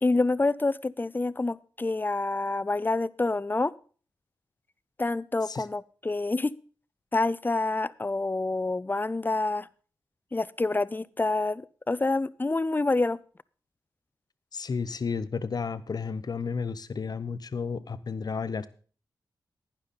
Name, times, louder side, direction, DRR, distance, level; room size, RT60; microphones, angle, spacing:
voice 1, 0.0-3.7 5.0-6.5 7.1-9.7 10.3-13.2, left 2 dB, 25° left, 20 dB, 0.5 m, -27 dB
voice 2, 14.5-18.7, left 5 dB, 55° left, 14 dB, 0.8 m, -32 dB
11.5 x 9.7 x 4.1 m, 0.41 s
cardioid pair, 50°, 8 cm